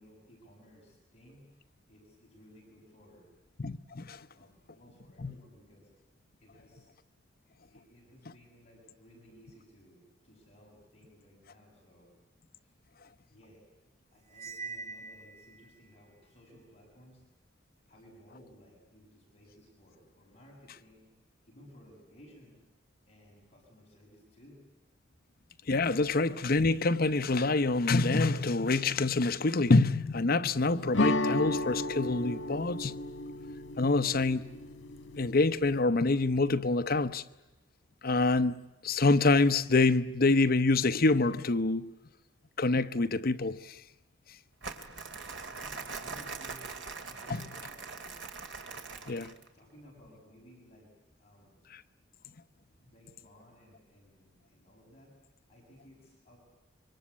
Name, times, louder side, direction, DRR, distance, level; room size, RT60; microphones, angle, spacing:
voice 1, 0.0-1.5 1.9-3.3 4.3-5.9 6.4-6.9 7.7-12.1 12.6-12.7 13.3-13.8 14.1-17.2 17.9-21.1 21.5-22.6 23.1-24.6 25.1-25.2 45.5-48.1 48.9-49.2 49.5-50.9 51.2-51.6 52.6-55.2 55.5-56.4, equal, 35° left, 7.4 m, -58 dB
voice 2, 3.6-4.3 5.2-5.3 25.7-33.0 33.8-34.5 35.2-37.2 38.0-41.9 42.6-43.8 49.1-49.3, left 3 dB, 55° left, 0.9 m, -26 dB
Cymbal, 14.3-15.7, right 4 dB, 40° right, 3.8 m, -43 dB
sound 1, 30.9-35.8, left 2 dB, 85° left, 1.7 m, -33 dB
Crumpling crinkling, 44.6-49.5, right 4 dB, 70° right, 2.6 m, -42 dB
26.0 x 24.5 x 8.5 m
head